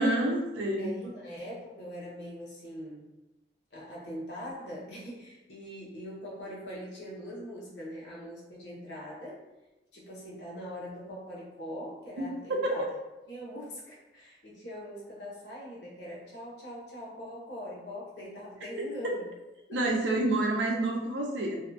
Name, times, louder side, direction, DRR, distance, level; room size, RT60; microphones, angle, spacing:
voice 1, 0.0-0.9 12.2-12.9 19.7-21.6, right 1 dB, 75° right, 0 dB, 0.5 m, -28 dB
voice 2, 0.8-3.1 3.7-9.4 9.9-12.9 13.3-19.2 19.7-19.9, equal, 70° left, -5 dB, 0.8 m, -42 dB
2.6 x 2.3 x 2.5 m, 1.0 s
head